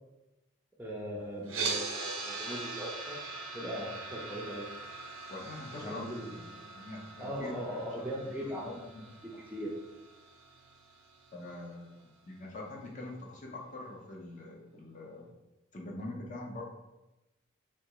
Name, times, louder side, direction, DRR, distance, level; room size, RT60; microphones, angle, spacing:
voice 1, 0.8-3.2 3.5-4.7 5.8-6.6 7.2-8.8 9.2-9.7, equal, 10° right, -4 dB, 0.5 m, -39 dB
sound 1, 1.4-11.6, right 4 dB, 75° right, 0.7 m, -41 dB
voice 2, 5.3-6.5 6.7-7.8 8.4-9.4 11.3-12.0 12.3-15.3 15.7-16.6, left 2 dB, 35° left, -2 dB, 0.6 m, -44 dB
3.4 x 2.8 x 2.9 m, 1.0 s
head